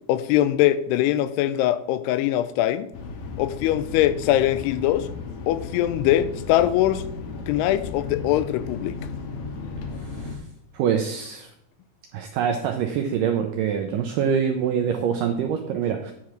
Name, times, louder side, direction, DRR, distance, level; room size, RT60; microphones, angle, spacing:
voice 1, 0.1-2.9 3.4-5.1 5.5-7.0 7.5-9.0, left 13 dB, 85° left, 2.6 m, -22 dB
sound 1, 2.9-10.4, left 4 dB, 70° left, 2.6 m, -35 dB
voice 2, 10.7-11.5 12.1-16.1, right 7 dB, 85° right, 1.9 m, -25 dB
10.5 x 4.8 x 5.8 m
omnidirectional pair, 4.7 m